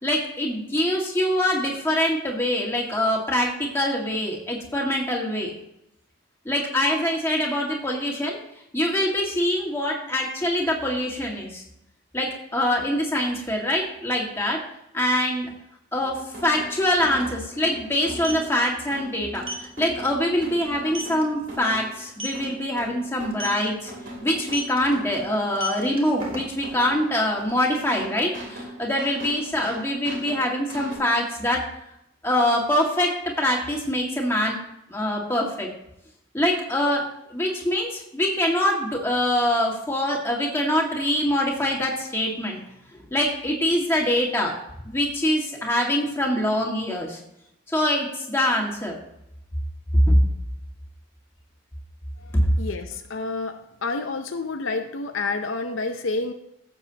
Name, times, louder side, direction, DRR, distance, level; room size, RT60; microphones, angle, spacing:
voice 1, 0.0-5.5 6.5-8.4 8.7-11.6 12.1-14.6 14.9-15.5 15.9-19.4 19.8-23.9 24.2-31.6 32.2-34.6 34.9-35.7 36.3-37.0 37.3-42.6 43.1-44.5 44.9-47.2 47.7-48.9 50.1-50.2, left 1 dB, 10° left, -1 dB, 1.8 m, -24 dB
sound 1, 15.9-31.0, equal, 55° right, 2.7 m, -40 dB
sound 2, 16.4-16.5 16.8-16.9 18.0-18.5 19.4-19.7 20.1-20.3 20.6-20.7 20.9-21.2 22.1-22.4 23.3-23.6 24.5-24.8 25.4-26.7, right 1 dB, 25° right, 1.6 m, -33 dB
voice 2, 52.6-53.6 53.8-56.3, left 3 dB, 65° left, 6 dB, 0.7 m, -28 dB
15.0 x 7.2 x 2.9 m, 0.82 s
head